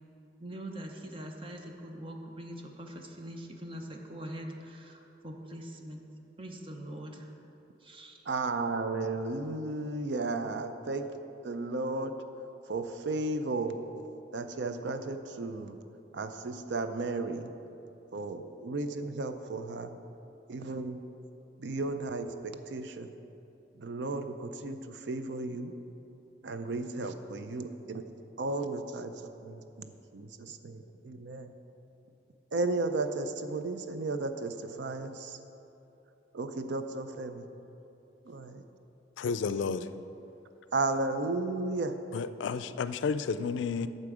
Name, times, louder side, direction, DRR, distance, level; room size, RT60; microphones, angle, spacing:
voice 1, 0.4-6.0 6.4-7.3 7.8-8.2, right 1 dB, 30° right, 3 dB, 0.7 m, -43 dB
voice 2, 8.3-11.1 11.4-12.1 12.7-13.8 14.3-15.8 16.1-17.5 18.1-19.9 20.5-21.0 21.6-23.1 23.8-25.7 26.4-28.0 28.4-29.1 29.4-31.5 32.5-35.4 36.3-37.5 38.3-38.6 40.7-41.9, right 3 dB, 80° right, 9 dB, 0.5 m, -34 dB
voice 3, 39.2-39.9 42.1-43.9, left 5 dB, 90° left, 13 dB, 0.3 m, -31 dB
8.5 x 6.7 x 4.8 m, 2.9 s
head